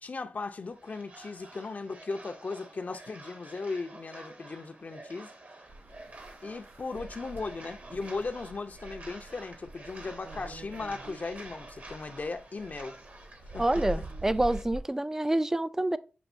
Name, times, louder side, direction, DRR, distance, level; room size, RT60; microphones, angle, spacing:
voice 1, 0.0-5.3 6.4-13.0 13.5-13.6, left 3 dB, 55° left, 0.6 m, -37 dB
sound 1, 0.6-14.6, right 2 dB, 55° right, 1.1 m, -49 dB
sound 2, 5.7-14.8, right 1 dB, 75° right, 0.6 m, -44 dB
voice 2, 13.6-16.0, right 1 dB, 15° right, 0.3 m, -27 dB
7.0 x 2.7 x 2.6 m
cardioid pair, 50°, 3 cm